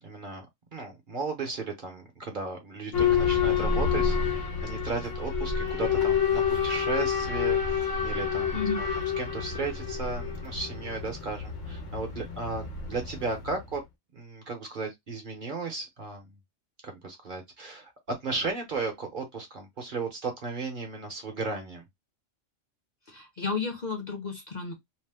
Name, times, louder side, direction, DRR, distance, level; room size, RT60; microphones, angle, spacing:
voice 1, 0.0-8.9 9.2-13.8 14.1-16.3 16.8-17.9 18.2-21.8, right 3 dB, 45° right, 0.9 m, -35 dB
Boat Water vehicle / Alarm, 2.9-13.6, left 7 dB, 85° left, 1.3 m, -28 dB
voice 2, 23.1-24.7, left 4 dB, 45° left, 0.8 m, -32 dB
2.9 x 2.0 x 3.3 m
omnidirectional pair, 1.2 m